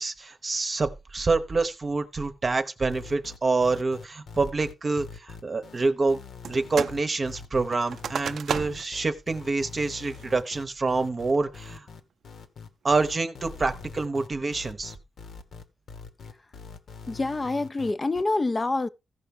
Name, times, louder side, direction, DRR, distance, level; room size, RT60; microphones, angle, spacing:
voice 1, 0.0-6.2 6.5-11.9 12.8-14.9, right 3 dB, 35° right, 0.9 m, -27 dB
sound 1, 2.9-18.2, left 5 dB, 75° left, 1.3 m, -44 dB
sound 2, 6.4-7.0 7.3-9.0 9.4-9.5 10.0-10.4 10.9-11.4, right 7 dB, 80° right, 0.4 m, -34 dB
voice 2, 17.1-18.9, left 2 dB, 25° left, 0.5 m, -26 dB
15.0 x 5.8 x 3.7 m
wide cardioid pair, 130°, 0 cm